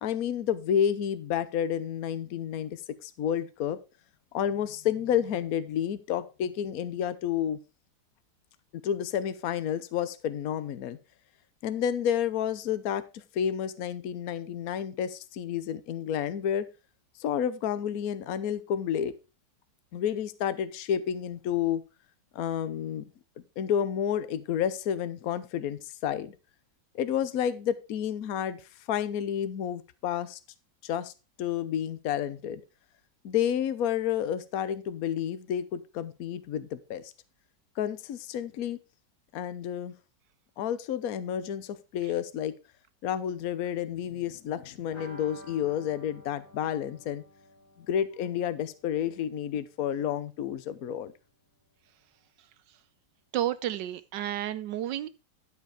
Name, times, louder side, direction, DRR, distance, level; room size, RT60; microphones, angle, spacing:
voice 1, 0.0-3.8 4.3-7.6 8.8-11.0 11.6-16.7 17.2-19.1 19.9-21.8 22.3-23.0 23.6-26.3 26.9-28.6 28.9-30.4 30.8-31.1 31.4-32.6 33.2-37.1 37.8-38.8 39.3-39.9 40.6-42.5 43.0-47.2 47.9-51.1, left 9 dB, 60° left, 13 dB, 1.2 m, -30 dB
sound 1, 44.9-50.5 50.8-50.9 51.2-51.3, left 1 dB, 85° left, 5.7 m, -52 dB
voice 2, 53.3-55.1, right 12 dB, 80° right, 14 dB, 1.3 m, -31 dB
12.0 x 5.0 x 4.9 m, 0.30 s
omnidirectional pair, 2.0 m